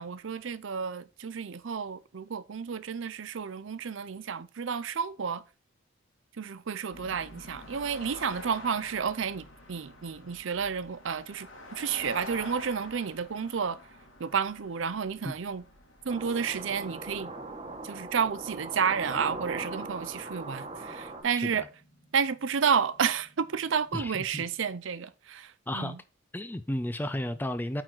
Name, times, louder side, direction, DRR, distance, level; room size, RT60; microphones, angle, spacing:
voice 1, 0.0-5.4 6.4-13.8 14.2-15.6 16.1-17.3 17.8-21.7 22.1-26.0, right 6 dB, 75° right, 0.5 m, -31 dB
sound 1, 6.9-21.0, left 1 dB, 75° left, 2.3 m, -48 dB
sound 2, 16.1-24.7, right 1 dB, 55° left, 3.5 m, -63 dB
sound 3, 16.1-21.2, right 2 dB, 30° right, 1.2 m, -40 dB
voice 2, 21.3-21.7 23.9-24.4 25.7-26.0 26.3-27.8, left 1 dB, 10° left, 0.3 m, -33 dB
8.8 x 4.0 x 4.5 m
head